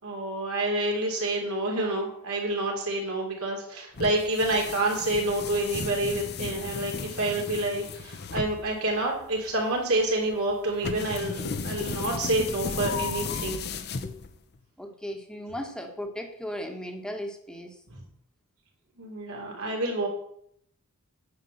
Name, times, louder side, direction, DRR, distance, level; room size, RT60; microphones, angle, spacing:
voice 1, 0.0-13.6 19.0-20.1, right 1 dB, 70° right, 0 dB, 3.5 m, -28 dB
sound 1, 3.9-14.6, left 4 dB, 50° left, 0.8 m, -35 dB
voice 2, 14.8-17.8, equal, 5° left, 4 dB, 1.4 m, -36 dB
9.8 x 5.5 x 7.9 m, 0.70 s
head